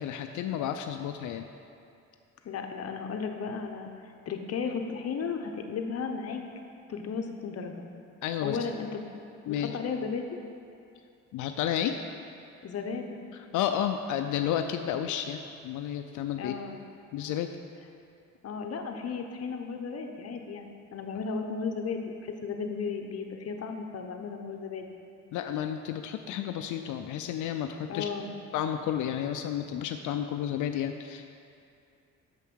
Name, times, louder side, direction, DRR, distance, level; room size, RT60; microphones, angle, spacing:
voice 1, 0.0-1.5 8.2-8.6 9.5-9.8 11.3-12.0 13.3-16.6 17.1-17.5 25.3-28.1 28.5-31.3, left 10 dB, 80° left, 6 dB, 0.5 m, -31 dB
voice 2, 2.4-6.4 6.9-7.9 8.4-9.0 9.5-10.3 12.6-13.2 16.4-16.8 18.4-24.9 27.9-28.3, left 5 dB, 55° left, 4 dB, 0.8 m, -35 dB
6.7 x 5.7 x 6.2 m, 2.5 s
cardioid pair, 90°, 30 cm